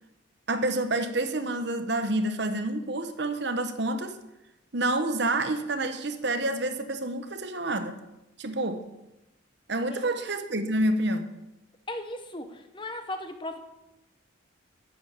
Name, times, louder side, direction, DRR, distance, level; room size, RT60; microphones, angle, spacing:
voice 1, 0.5-4.2 4.7-8.0 8.4-8.9 9.7-11.3, right 2 dB, 55° right, 9 dB, 1.0 m, -28 dB
voice 2, 11.9-13.6, left 1 dB, 25° left, 7 dB, 1.0 m, -37 dB
11.0 x 7.1 x 8.5 m, 0.94 s
head